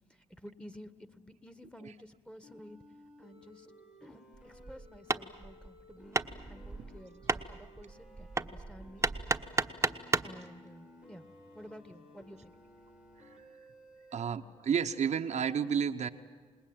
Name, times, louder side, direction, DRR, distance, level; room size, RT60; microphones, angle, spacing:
voice 1, 0.1-2.8 3.2-3.7 4.0-6.2 6.5-9.1 10.2-11.3 11.5-12.5, equal, 5° left, 12 dB, 1.6 m, -52 dB
sound 1, 2.4-14.3, left 1 dB, 85° left, 5.1 m, -57 dB
Hammer, 4.3-10.4, right 3 dB, 20° right, 1.1 m, -34 dB
voice 2, 14.1-16.1, right 7 dB, 65° right, 6 dB, 1.1 m, -31 dB
27.5 x 19.5 x 8.9 m, 1.5 s
supercardioid pair, 60°, 13 cm